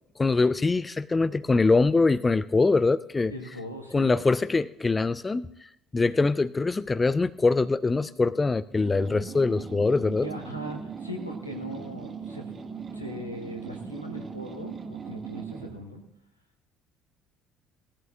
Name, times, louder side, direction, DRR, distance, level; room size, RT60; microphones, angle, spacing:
voice 1, 0.2-3.3 3.9-10.3, left 3 dB, 20° left, 15 dB, 0.4 m, -23 dB
voice 2, 3.3-4.2 10.2-12.5 12.9-16.0, equal, 90° left, 1 dB, 1.5 m, -39 dB
sound 1, 8.7-15.8, right 5 dB, 30° right, 1.4 m, -39 dB
19.0 x 14.0 x 2.5 m, 0.76 s
figure-of-eight pair, 55°, 0 cm